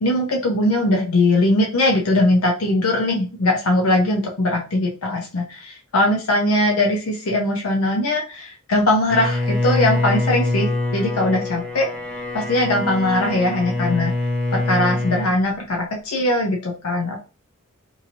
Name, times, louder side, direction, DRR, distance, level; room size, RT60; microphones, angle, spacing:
voice 1, 0.0-11.9 12.3-14.1 14.5-17.2, left 1 dB, 80° left, 1 dB, 0.6 m, -20 dB
Bowed string instrument, 9.1-15.4, left 2 dB, 5° left, 0.4 m, -24 dB
2.8 x 2.6 x 2.7 m, 0.33 s
head